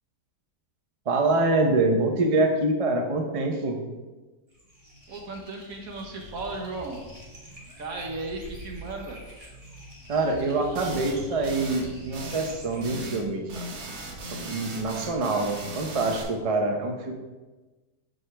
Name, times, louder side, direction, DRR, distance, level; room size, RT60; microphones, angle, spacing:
voice 1, 1.1-3.8 10.1-13.6 14.3-17.1, right 2 dB, 40° right, 2 dB, 0.5 m, -25 dB
sound 1, 4.5-12.9, right 1 dB, 25° right, 1.3 m, -45 dB
voice 2, 5.1-7.0 7.8-9.2, right 2 dB, 70° right, 2 dB, 1.4 m, -35 dB
sound 2, 10.8-11.2 11.4-11.9 12.1-12.6 12.8-13.2 13.5-16.2, right 1 dB, 85° right, 1.6 m, -38 dB
6.2 x 5.1 x 3.3 m, 1.2 s
omnidirectional pair, 1.6 m